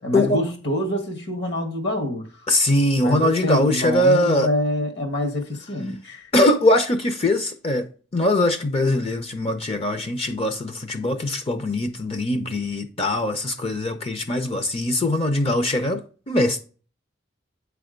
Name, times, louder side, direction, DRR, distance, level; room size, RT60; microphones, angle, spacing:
voice 1, 0.0-2.5 3.0-6.3, left 1 dB, 65° left, 1.7 m, -26 dB
voice 2, 2.5-4.5 6.3-16.6, left 1 dB, 30° left, 0.6 m, -21 dB
8.4 x 3.5 x 5.1 m
head